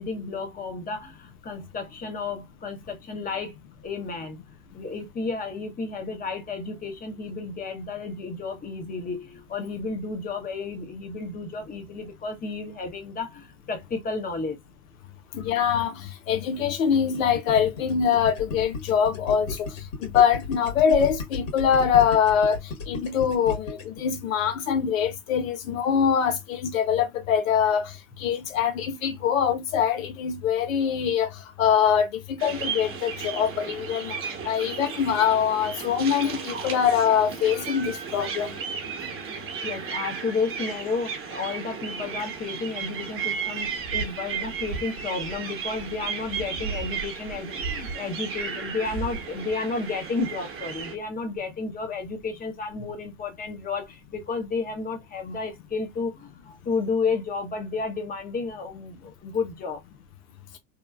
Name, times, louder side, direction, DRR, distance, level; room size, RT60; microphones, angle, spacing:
voice 1, 0.0-3.5 3.8-4.4 4.7-14.6 15.4-15.5 39.6-59.8, left 4 dB, 20° left, 0.9 m, -32 dB
voice 2, 15.3-19.7 20.0-22.6 22.9-27.9 28.2-31.3 31.6-34.1 34.4-38.6, left 8 dB, 85° left, 0.7 m, -23 dB
Gurgling, 16.9-24.0, left 3 dB, 70° left, 1.6 m, -34 dB
sound 1, 32.4-50.9, right 6 dB, 35° right, 0.9 m, -34 dB
2.9 x 2.3 x 2.3 m
hypercardioid pair, 95°, 39 cm